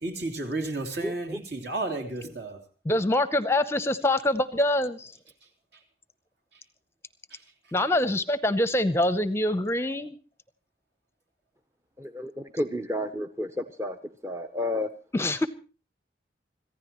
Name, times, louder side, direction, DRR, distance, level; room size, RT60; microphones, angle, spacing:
voice 1, 0.0-2.6 7.3-7.4, right 2 dB, 60° right, 5 dB, 3.4 m, -32 dB
voice 2, 1.0-1.4 12.0-14.0 14.2-14.9, left 1 dB, 15° right, 7 dB, 0.7 m, -31 dB
voice 3, 2.8-5.2 7.7-10.2 15.1-15.5, left 1 dB, 15° left, 13 dB, 0.7 m, -25 dB
26.0 x 15.0 x 3.1 m, 0.34 s
head